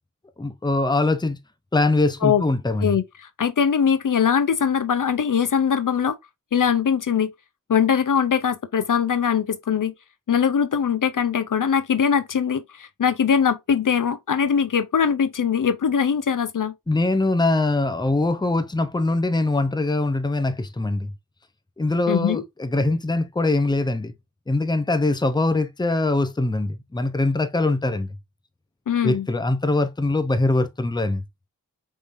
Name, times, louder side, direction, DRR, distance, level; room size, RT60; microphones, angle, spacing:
voice 1, 0.4-1.4 1.7-3.0 16.9-21.1 21.8-24.1 24.5-28.1 29.0-31.2, left 2 dB, 10° left, 0.6 m, -22 dB
voice 2, 2.8-6.2 6.5-7.3 7.7-9.9 10.3-16.7 22.1-22.4 28.9-29.3, left 7 dB, 65° left, 0.6 m, -21 dB
5.3 x 3.2 x 2.5 m
cardioid pair, 45°, 35 cm